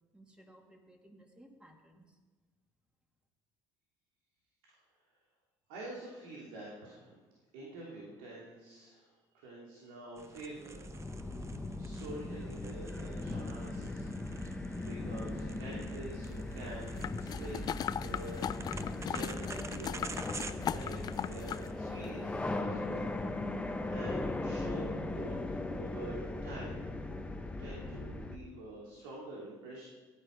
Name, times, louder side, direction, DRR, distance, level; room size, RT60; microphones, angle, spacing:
voice 1, 0.1-2.2, right 1 dB, 10° right, 2 dB, 2.4 m, -58 dB
voice 2, 5.7-7.2 7.5-11.2 11.8-14.0 14.4-20.2 20.7-26.8 27.6-29.8, right 2 dB, 85° right, -4 dB, 2.8 m, -47 dB
sound 1, 10.2-21.7, right 4 dB, 30° right, 0.8 m, -50 dB
sound 2, 10.7-28.4, left 2 dB, 10° left, 1.1 m, -38 dB
sound 3, 17.0-21.7 22.0-22.1, left 9 dB, 40° left, 0.4 m, -38 dB
15.0 x 10.0 x 5.2 m, 1.3 s
supercardioid pair, 90°, 10 cm